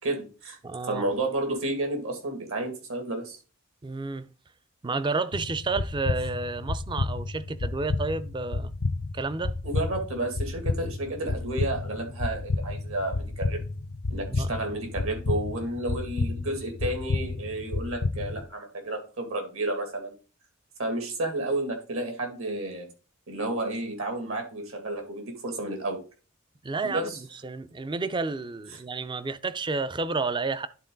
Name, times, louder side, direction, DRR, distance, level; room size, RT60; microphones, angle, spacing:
voice 1, 0.0-3.4 9.6-13.6 14.1-20.1 20.8-22.9 23.3-26.0 26.8-27.2 28.7-28.8, right 2 dB, 70° right, 2.3 m, -31 dB
voice 2, 0.6-1.0 3.8-4.3 4.8-8.7 9.1-9.5 14.3-14.5 26.6-27.1 27.4-30.7, right 3 dB, 20° right, 0.4 m, -30 dB
sound 1, 5.3-18.4, left 3 dB, 75° left, 0.8 m, -31 dB
11.0 x 3.8 x 3.9 m
head